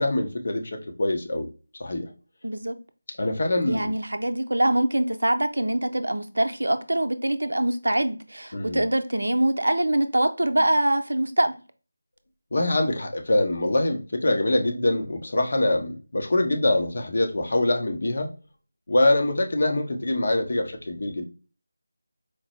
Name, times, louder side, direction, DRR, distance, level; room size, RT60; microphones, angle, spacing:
voice 1, 0.0-1.5 1.8-2.1 3.1-3.9 8.5-8.9 12.5-18.3 18.9-21.2, left 1 dB, 55° left, 0.8 m, -24 dB
voice 2, 2.4-2.7 3.7-11.6, right 1 dB, 80° right, 0.5 m, -24 dB
4.4 x 2.0 x 2.9 m
figure-of-eight pair, 165°, 0 cm